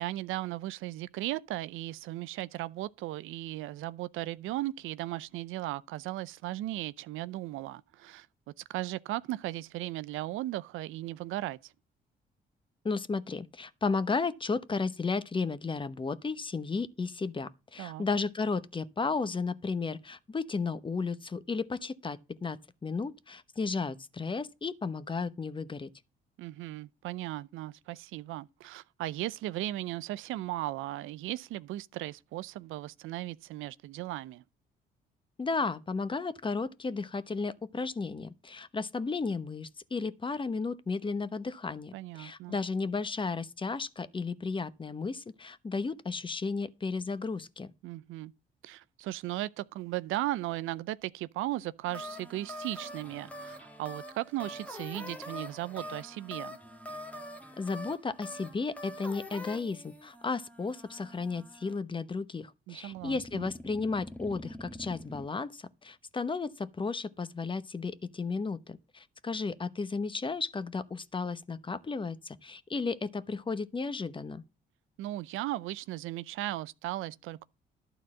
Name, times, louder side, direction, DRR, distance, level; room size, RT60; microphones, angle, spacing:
voice 1, 0.0-8.3 8.7-11.7 17.8-18.1 26.4-34.4 41.9-42.6 47.8-48.3 48.6-56.6 62.7-63.5 75.0-77.4, right 16 dB, 90° right, 0.5 m, -36 dB
voice 2, 12.8-25.9 35.4-47.7 57.6-74.4, left 4 dB, 25° left, 0.9 m, -34 dB
sound 1, 51.9-61.8 62.9-65.3, equal, 5° left, 1.4 m, -44 dB
12.0 x 4.0 x 7.6 m
cardioid pair, 90°, 20 cm